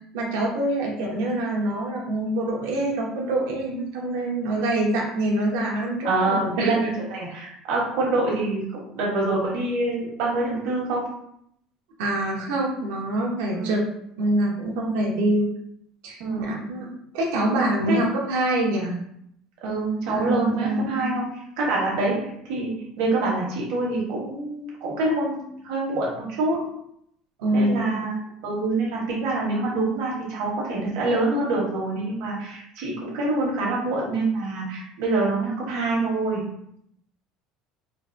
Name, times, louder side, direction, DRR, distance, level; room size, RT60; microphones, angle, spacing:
voice 1, 0.1-6.8 12.0-13.8 14.2-15.5 16.0-19.0 20.1-21.1 27.4-28.0, right 1 dB, 90° right, -2 dB, 0.9 m, -25 dB
voice 2, 6.0-11.0 13.5-13.7 15.1-15.2 16.2-16.7 17.9-18.0 19.6-21.3 21.6-22.2 22.5-22.7 23.0-26.6 27.5-28.2 28.4-36.4, right 2 dB, 70° right, -4 dB, 1.1 m, -25 dB
3.8 x 2.2 x 2.5 m, 0.73 s
cardioid pair, 145°, 0 cm